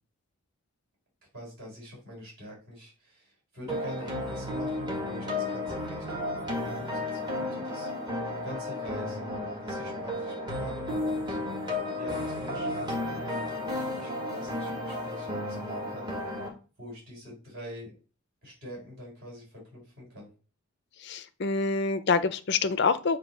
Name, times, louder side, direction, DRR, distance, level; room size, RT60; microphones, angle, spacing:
voice 1, 1.3-6.4 6.6-7.9 8.4-11.4 12.0-16.1 16.8-17.9 18.4-20.3, equal, 45° right, -3 dB, 3.7 m, -45 dB
sound 1, 3.7-16.5, left 1 dB, 20° right, 1.6 m, -33 dB
voice 2, 21.0-23.2, left 4 dB, 50° left, 13 dB, 0.5 m, -26 dB
7.8 x 2.7 x 5.3 m, 0.35 s
head